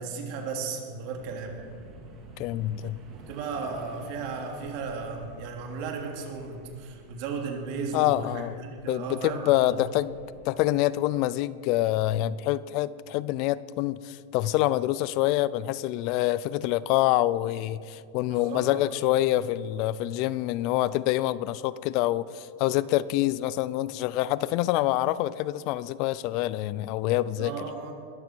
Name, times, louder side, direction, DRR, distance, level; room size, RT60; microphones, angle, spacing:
voice 1, 0.0-1.5 3.1-9.8 18.3-18.9 27.4-27.9, right 4 dB, 55° right, 2 dB, 3.0 m, -35 dB
sound 1, 1.1-10.5, right 2 dB, 35° right, 2.8 m, -51 dB
voice 2, 2.4-3.0 7.9-8.6 8.9-10.1 10.5-27.5, left 15 dB, 50° left, 18 dB, 0.5 m, -26 dB
20.5 x 13.5 x 4.6 m, 2.3 s
supercardioid pair, 130°, 0 cm